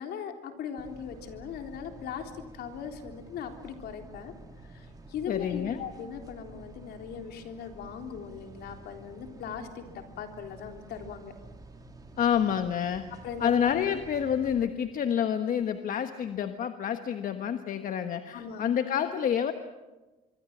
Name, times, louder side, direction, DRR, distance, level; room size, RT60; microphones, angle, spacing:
voice 1, 0.0-4.3 4.7-11.3 13.2-13.5 18.3-18.6, left 7 dB, 70° left, 4 dB, 3.7 m, -39 dB
sound 1, 0.8-14.7, right 2 dB, 20° right, 3.4 m, -50 dB
voice 2, 5.3-5.8 12.2-13.1 13.4-19.5, left 8 dB, 55° left, 8 dB, 1.3 m, -28 dB
25.5 x 24.0 x 7.4 m, 1.2 s
cardioid pair, 110°, 17 cm